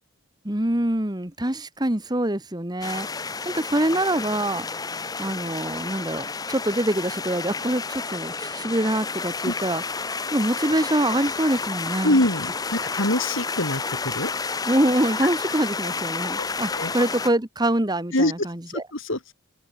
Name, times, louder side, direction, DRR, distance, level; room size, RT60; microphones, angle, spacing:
voice 1, 0.4-4.7 5.2-9.8 10.3-12.2 14.6-18.8, right 1 dB, 20° right, 1.6 m, -25 dB
sound 1, 2.8-17.3, left 4 dB, 20° left, 0.6 m, -30 dB
voice 2, 12.0-14.3 16.2-16.5 16.7-16.9 18.1-18.3 18.7-19.3, left 1 dB, 65° left, 3.6 m, -25 dB
open air
head